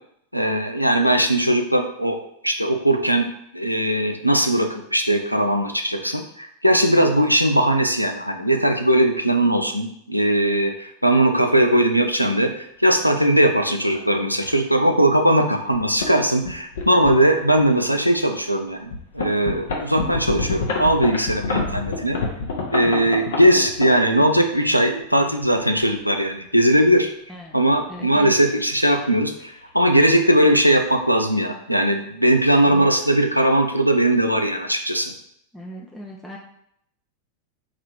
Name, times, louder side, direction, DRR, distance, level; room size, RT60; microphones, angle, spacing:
voice 1, 0.3-2.2 2.4-3.3 3.5-18.9 19.1-22.2 22.7-27.1 27.5-35.1, right 1 dB, 90° right, 4 dB, 0.4 m, -19 dB
sound 1, 12.2-12.3 13.2-13.4 13.9-14.0 14.4-14.5 15.3-15.4 15.7-16.1 16.4-17.7 18.2-18.3 18.9-24.4 25.3-26.2 27.9-29.1 29.3-29.6 29.9-30.0 30.3-30.7, left 3 dB, 60° left, 0.8 m, -29 dB
voice 2, 27.9-28.3 32.7-32.9 35.5-36.4, equal, 5° left, -3 dB, 0.6 m, -38 dB
3.9 x 2.8 x 4.5 m, 0.71 s
figure-of-eight pair, 90°, 0 cm